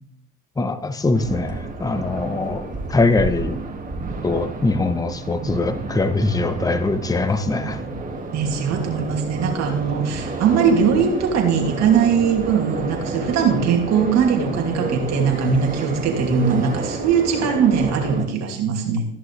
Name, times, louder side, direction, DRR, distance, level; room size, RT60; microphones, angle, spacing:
voice 1, 0.6-3.6 4.2-7.8, left 3 dB, 10° left, 10 dB, 1.0 m, -22 dB
sound 1, 1.1-18.3, right 3 dB, 25° right, 2.2 m, -30 dB
voice 2, 8.3-19.1, right 6 dB, 50° right, 2 dB, 2.7 m, -20 dB
14.0 x 10.5 x 3.4 m, 0.66 s
supercardioid pair, 100°, 34 cm